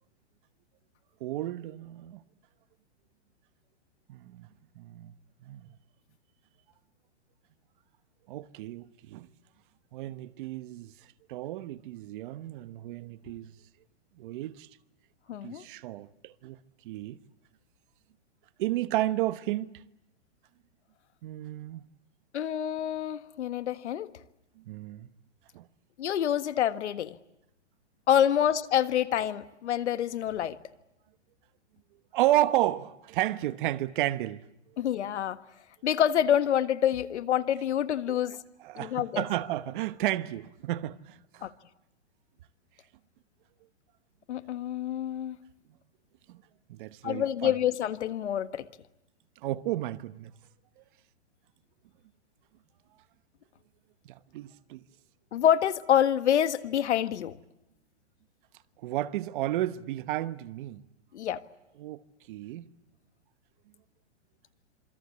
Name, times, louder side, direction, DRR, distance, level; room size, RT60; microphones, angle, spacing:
voice 1, 1.2-2.2 4.1-4.5 4.8-5.1 5.5-5.6 8.3-9.3 9.9-10.9 11.3-13.5 14.2-14.7 15.4-16.6 16.8-17.2 18.6-19.7 21.2-21.9 24.7-25.1 25.5-25.6 32.1-34.4 38.1-38.2 38.6-41.5 46.3-46.4 46.7-47.5 49.4-50.3 54.1-54.8 58.8-60.8 61.8-62.0 62.3-62.7, right 14 dB, 45° right, 1.1 m, -32 dB
voice 2, 15.3-15.6 22.3-24.1 26.0-27.2 28.1-30.6 34.8-35.4 35.8-38.4 38.8-39.2 41.4-41.5 44.3-45.4 47.0-48.7 55.3-57.4 61.1-61.4, left 10 dB, 75° left, 1.6 m, -27 dB
27.5 x 25.5 x 8.4 m
hypercardioid pair, 145°, 35 cm